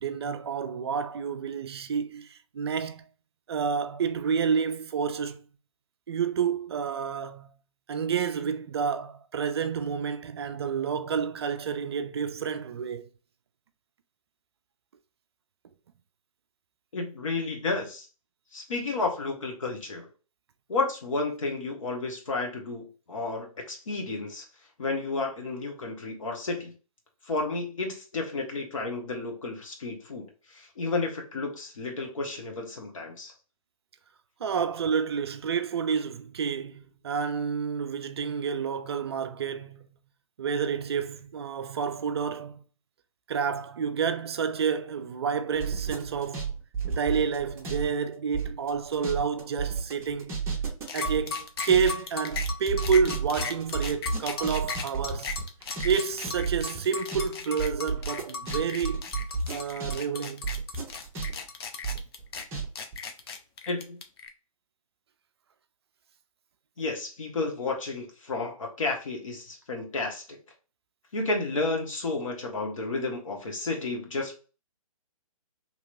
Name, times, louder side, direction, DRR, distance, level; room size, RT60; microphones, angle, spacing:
voice 1, 0.0-3.0 3.5-5.4 6.1-7.5 7.9-13.1 34.4-39.9 40.4-42.6 43.3-46.5 46.9-50.4 50.9-55.4 55.8-59.0 59.5-60.4, right 6 dB, 45° right, 0.4 m, -29 dB
voice 2, 16.9-18.0 18.5-20.1 20.7-24.4 24.8-26.7 27.3-30.2 30.5-33.3 63.7-64.0 66.8-70.4 71.1-74.4, left 3 dB, 65° left, 1.2 m, -32 dB
sound 1, 45.5-47.9 48.1-59.9 60.2-62.6 62.9-63.0, right 5 dB, 15° right, 0.8 m, -32 dB
sound 2, 50.9-64.3, left 5 dB, 45° left, 0.6 m, -36 dB
2.9 x 2.9 x 2.5 m
figure-of-eight pair, 130°, 18 cm